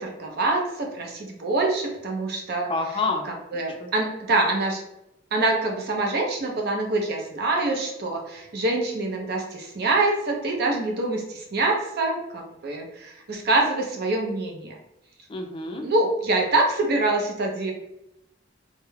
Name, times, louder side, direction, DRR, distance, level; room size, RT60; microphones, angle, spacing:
voice 1, 0.0-2.7 3.2-4.8 5.3-14.8 15.8-17.7, right 2 dB, 60° right, 1 dB, 0.6 m, -25 dB
voice 2, 2.7-3.9 15.3-15.9, left 3 dB, 30° left, 3 dB, 0.3 m, -29 dB
2.3 x 2.0 x 3.1 m, 0.86 s
head